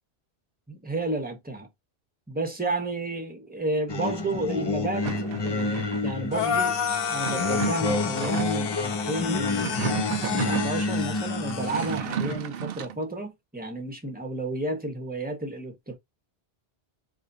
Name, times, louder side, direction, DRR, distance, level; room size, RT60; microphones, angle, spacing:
voice 1, 0.7-1.7 2.3-6.8 7.1-9.8 10.3-15.9, right 2 dB, 10° right, 1.0 m, -32 dB
Singing, 3.9-12.4, left 3 dB, 30° left, 0.5 m, -29 dB
sound 1, 5.0-6.2 7.2-8.7 9.4-10.8 11.4-13.0, right 10 dB, 65° right, 0.7 m, -33 dB
sound 2, 6.3-11.9, left 7 dB, 65° left, 0.8 m, -31 dB
4.1 x 3.0 x 2.6 m
omnidirectional pair, 1.1 m